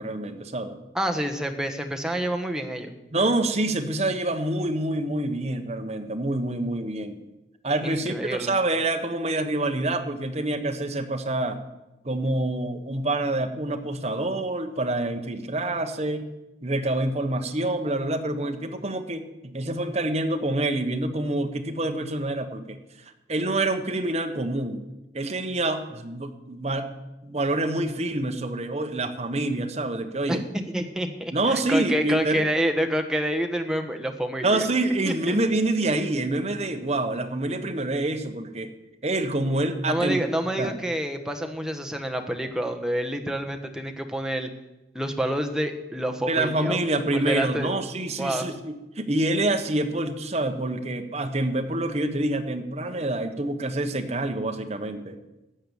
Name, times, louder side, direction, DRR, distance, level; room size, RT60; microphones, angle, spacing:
voice 1, 0.0-0.8 3.1-7.2 7.6-11.6 12.0-16.3 16.6-22.8 23.3-24.8 25.1-26.9 27.2-30.4 31.3-32.5 34.4-38.7 39.0-40.2 40.6-40.8 46.3-55.2, right 2 dB, 35° right, 6 dB, 1.2 m, -27 dB
voice 2, 0.9-2.9 7.8-8.5 30.3-34.7 35.1-35.4 39.9-44.5 44.9-46.8 47.1-47.7 48.2-48.5, right 1 dB, 5° right, 3 dB, 1.2 m, -28 dB
14.5 x 8.8 x 7.2 m, 0.98 s
head